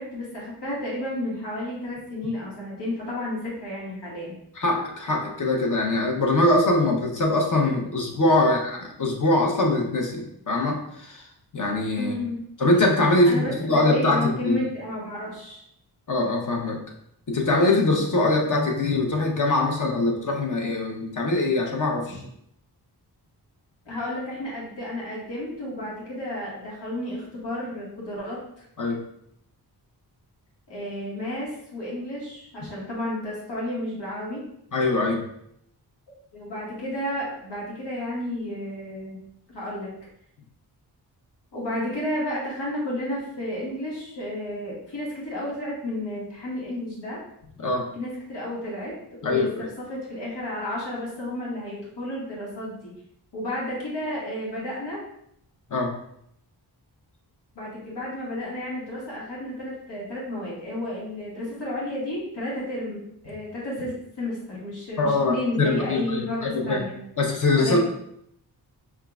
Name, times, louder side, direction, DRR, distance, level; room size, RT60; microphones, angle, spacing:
voice 1, 0.0-4.3 8.1-8.5 12.0-12.4 13.2-15.6 22.1-22.2 23.8-28.6 30.7-34.4 36.3-39.2 39.5-39.9 41.5-47.2 47.9-48.9 49.2-49.5 49.8-52.9 53.3-55.0 57.5-67.0 67.6-67.8, left 1 dB, 90° left, -6 dB, 1.7 m, -32 dB
voice 2, 4.6-11.2 11.5-12.1 12.6-14.6 16.1-16.8 17.3-22.2 28.8-29.0 34.7-35.2 47.6-47.8 49.2-49.7 55.7-55.9 65.0-66.8 67.2-67.8, left 2 dB, 50° left, 0 dB, 1.0 m, -23 dB
5.6 x 3.7 x 2.4 m, 0.73 s
wide cardioid pair, 125°, 40 cm